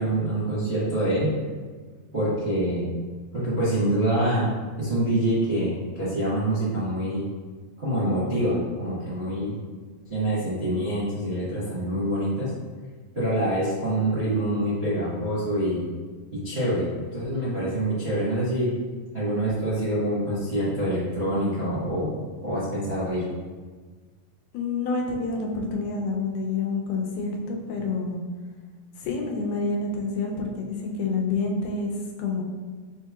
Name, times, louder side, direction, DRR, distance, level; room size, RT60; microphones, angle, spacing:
voice 1, 0.0-1.3 2.1-2.9 3.3-4.5 4.8-7.3 7.8-9.5 10.1-12.5 13.1-15.8 16.3-18.7 19.1-22.1 22.4-23.2, right 1 dB, 85° right, -14 dB, 0.5 m, -26 dB
voice 2, 24.5-28.2 29.0-32.4, left 3 dB, 85° left, 0 dB, 2.2 m, -28 dB
6.2 x 2.8 x 2.3 m, 1.4 s
omnidirectional pair, 3.7 m